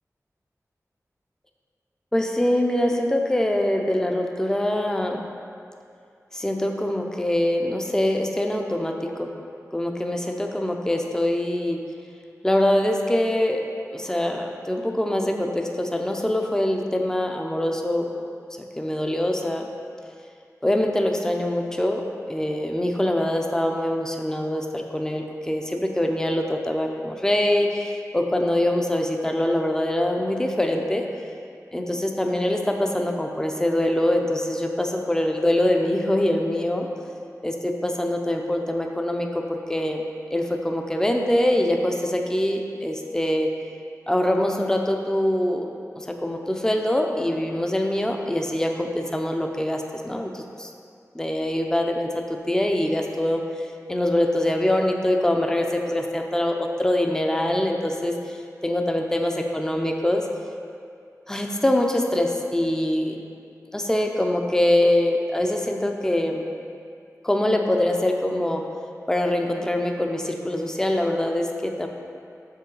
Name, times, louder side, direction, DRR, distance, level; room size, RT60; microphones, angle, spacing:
voice 1, 2.1-5.2 6.3-9.3 9.7-11.8 12.4-13.6 13.9-18.1 18.6-19.7 20.6-31.1 31.7-36.9 37.4-40.0 40.3-43.5 44.1-50.7 51.1-58.4 58.6-60.2 61.3-63.2 63.7-66.4 67.2-68.6 69.1-71.9, left 1 dB, 10° left, 3 dB, 0.5 m, -24 dB
6.6 x 5.4 x 3.9 m, 2.4 s
wide cardioid pair, 55°, 6 cm